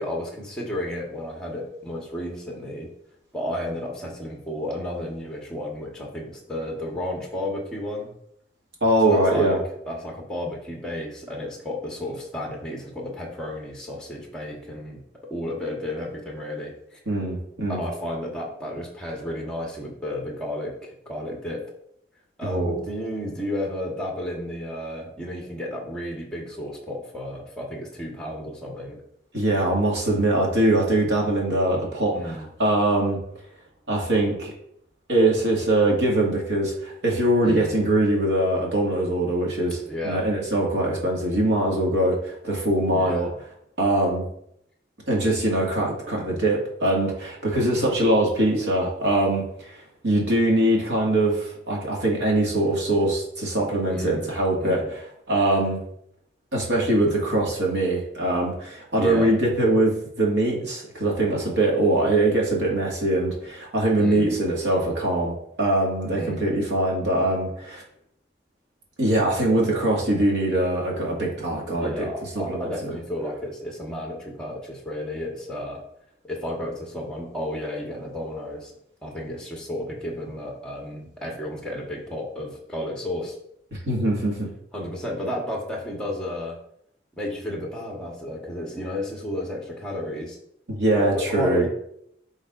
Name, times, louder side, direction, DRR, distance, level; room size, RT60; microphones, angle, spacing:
voice 1, 0.0-2.9 3.3-8.1 9.0-9.6 9.9-15.0 15.3-17.0 17.7-21.6 22.4-29.0 32.1-32.5 37.4-37.8 39.9-40.3 42.9-43.3 53.9-54.3 54.6-54.9 58.9-59.3 64.0-64.4 66.1-66.4 71.8-75.8 76.2-78.7 79.0-83.3 84.7-86.6 87.2-90.4 90.9-91.7, left 1 dB, 5° left, -2 dB, 1.3 m, -32 dB
voice 2, 8.8-9.6 17.1-17.8 22.4-22.8 29.3-33.2 33.9-34.5 35.1-43.3 43.8-44.3 45.1-49.8 50.0-55.8 56.5-67.8 69.0-72.1 72.4-72.9 83.7-84.5 90.7-91.7, right 1 dB, 75° right, -2 dB, 2.0 m, -22 dB
11.0 x 3.9 x 2.6 m, 0.72 s
head